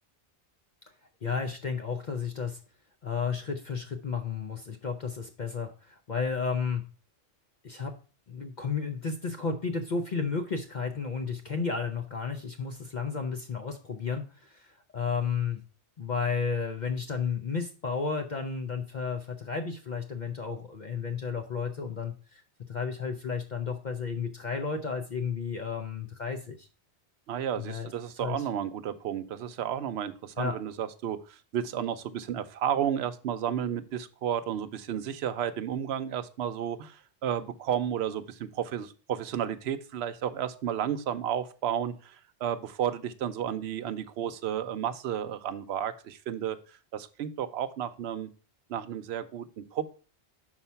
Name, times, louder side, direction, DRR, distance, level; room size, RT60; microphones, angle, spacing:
voice 1, 1.2-2.6 3.0-6.8 7.6-7.9 8.3-15.6 16.0-22.4 22.7-26.7 27.6-27.9 28.2-28.4 30.4-30.5, left 5 dB, 45° left, 6 dB, 0.7 m, -32 dB
voice 2, 27.3-48.3 48.7-49.8, right 9 dB, 70° right, 10 dB, 0.9 m, -32 dB
5.7 x 4.5 x 5.5 m, 0.37 s
omnidirectional pair, 1.2 m